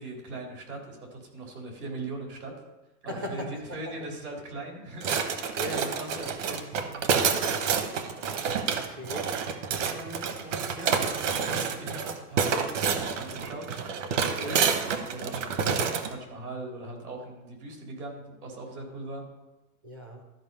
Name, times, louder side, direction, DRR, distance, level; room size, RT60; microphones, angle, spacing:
voice 1, 0.0-2.5 3.0-5.6 6.0-8.0 9.8-14.7 15.0-19.2, right 2 dB, 90° right, 0 dB, 3.7 m, -40 dB
voice 2, 3.1-4.1 5.5-6.4 8.8-9.3 14.4-14.8 19.8-20.2, equal, 15° right, 3 dB, 0.4 m, -38 dB
sound 1, 5.0-16.1, right 6 dB, 55° right, 1.1 m, -28 dB
13.0 x 5.0 x 5.5 m, 1.1 s
supercardioid pair, 170°, 43 cm